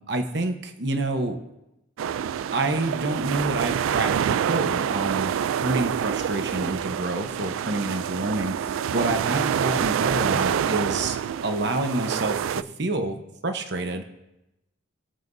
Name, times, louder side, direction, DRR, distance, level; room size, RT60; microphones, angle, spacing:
voice 1, 0.1-1.4 2.5-11.2 11.4-14.0, right 2 dB, 55° right, 6 dB, 1.0 m, -28 dB
sound 1, 2.0-12.6, right 8 dB, 85° right, 0.3 m, -27 dB
21.5 x 7.4 x 2.7 m, 0.93 s
head